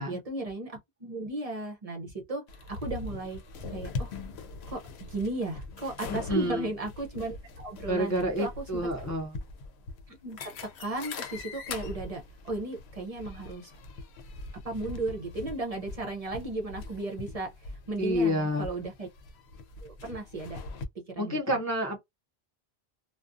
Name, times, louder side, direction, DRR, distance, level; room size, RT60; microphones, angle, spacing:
voice 1, 0.0-3.4 3.7-4.1 4.7-8.8 10.1-13.7 14.6-19.1 19.8-20.6 20.9-21.6, right 2 dB, 40° right, 0.6 m, -35 dB
sound 1, 2.5-20.9, left 3 dB, 85° left, 0.8 m, -42 dB
voice 2, 6.1-6.7 7.9-9.4 18.0-18.7 21.2-22.0, equal, 25° left, 0.4 m, -29 dB
2.4 x 2.2 x 2.5 m
omnidirectional pair, 1.1 m